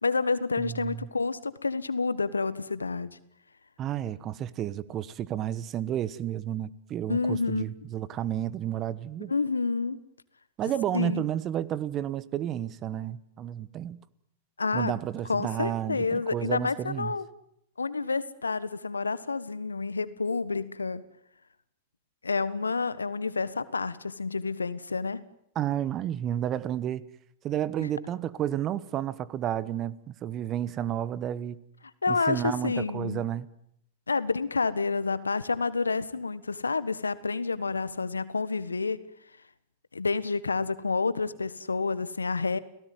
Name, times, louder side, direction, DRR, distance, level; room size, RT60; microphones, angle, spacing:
voice 1, 0.0-3.2 7.1-7.6 9.2-10.0 10.9-11.3 14.6-14.9 15.3-17.3 17.8-21.0 22.2-25.2 27.8-27.9 32.0-33.3 34.1-39.0 39.9-42.6, left 4 dB, 85° left, 1.4 m, -29 dB
voice 2, 0.6-1.1 3.8-9.3 10.6-14.0 14.7-17.1 25.5-27.1 27.4-31.6 32.1-33.5, right 11 dB, 30° right, 1.3 m, -31 dB
30.0 x 18.0 x 9.5 m
figure-of-eight pair, 100°, 0 cm